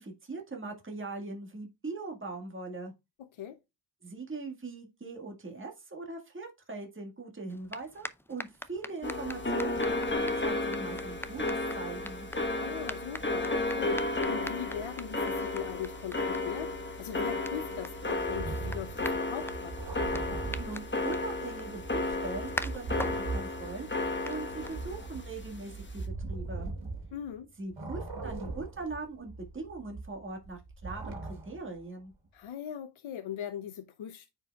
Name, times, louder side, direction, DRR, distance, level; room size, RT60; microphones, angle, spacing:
voice 1, 0.0-2.9 4.0-12.3 20.4-26.7 27.6-32.1, right 3 dB, 25° right, 1.8 m, -41 dB
voice 2, 3.2-3.6 12.6-19.8 27.1-27.5 32.3-34.3, left 9 dB, 85° left, 0.7 m, -40 dB
sound 1, 7.5-25.2, left 1 dB, 5° left, 0.5 m, -45 dB
sound 2, 9.0-26.1, left 2 dB, 25° left, 1.3 m, -33 dB
sound 3, 18.2-21.3 21.7-27.4 27.7-31.8, right 3 dB, 90° right, 2.5 m, -40 dB
9.5 x 4.9 x 2.3 m
wide cardioid pair, 85°, 46 cm